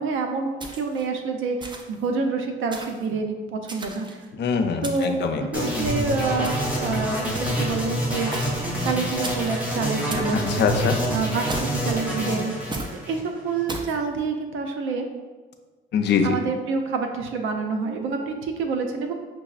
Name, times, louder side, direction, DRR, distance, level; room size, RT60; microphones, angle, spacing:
voice 1, 0.0-4.3 4.8-8.3 8.8-10.6 11.1-12.5 13.0-15.1 16.2-19.1, right 4 dB, 80° right, 4 dB, 0.5 m, -27 dB
sound 1, 0.6-1.1 1.6-2.0 2.7-3.1 3.7-4.2 4.8-5.2 6.4-6.8 7.3-7.8 8.3-8.7 9.2-9.6 10.1-10.4 11.5-11.9 12.7-13.0 13.7-14.0, right 2 dB, 25° right, 0.4 m, -36 dB
voice 2, 4.4-5.7 10.3-11.0 15.9-16.4, left 6 dB, 60° left, 5 dB, 0.4 m, -23 dB
sound 2, 5.5-13.6, equal, 5° right, 0.9 m, -27 dB
5.8 x 2.0 x 2.4 m, 1.3 s
cardioid pair, 90°, 20 cm